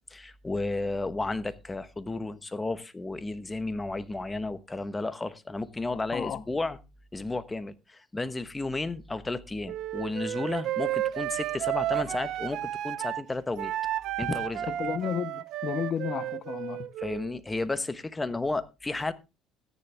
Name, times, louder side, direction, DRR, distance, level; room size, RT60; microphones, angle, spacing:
voice 1, 0.1-6.8 7.1-13.7 14.2-14.7 17.0-19.1, left 2 dB, 15° left, 1.1 m, -33 dB
Wind instrument woodwind instrument, 9.7-13.2 13.6-17.3, right 13 dB, 65° right, 0.7 m, -32 dB
voice 2, 14.7-16.9, left 8 dB, 50° left, 0.8 m, -32 dB
14.0 x 9.7 x 3.4 m
cardioid pair, 100°, 0 cm